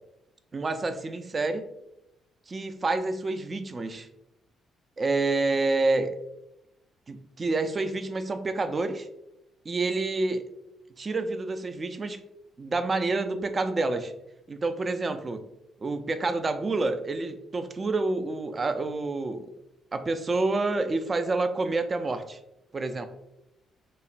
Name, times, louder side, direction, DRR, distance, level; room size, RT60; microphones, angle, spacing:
voice 1, 0.5-1.7 2.5-4.1 5.0-6.2 7.1-9.1 9.7-10.5 11.0-12.2 12.6-14.1 14.5-15.5 15.8-19.5 19.9-22.4 22.7-23.1, right 3 dB, 35° right, 8 dB, 0.4 m, -28 dB
5.4 x 2.1 x 2.5 m, 0.85 s
cardioid pair, 90°, 0 cm